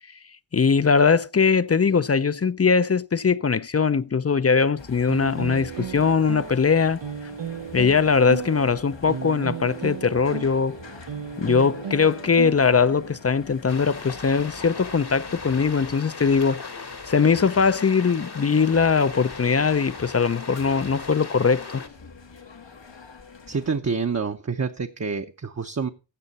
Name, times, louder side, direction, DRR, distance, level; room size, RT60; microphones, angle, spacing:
voice 1, 0.5-7.0 7.7-10.8 11.4-16.6 17.1-21.8, left 5 dB, 35° left, 0.4 m, -21 dB
sound 1, 4.8-23.8, left 4 dB, 80° left, 1.3 m, -45 dB
sound 2, 5.1-13.2, right 8 dB, 75° right, 0.7 m, -35 dB
sound 3, 13.7-21.9, left 4 dB, 60° left, 1.5 m, -38 dB
voice 2, 23.5-25.9, right 5 dB, 35° right, 0.7 m, -27 dB
14.5 x 6.9 x 4.1 m
wide cardioid pair, 40°, 44 cm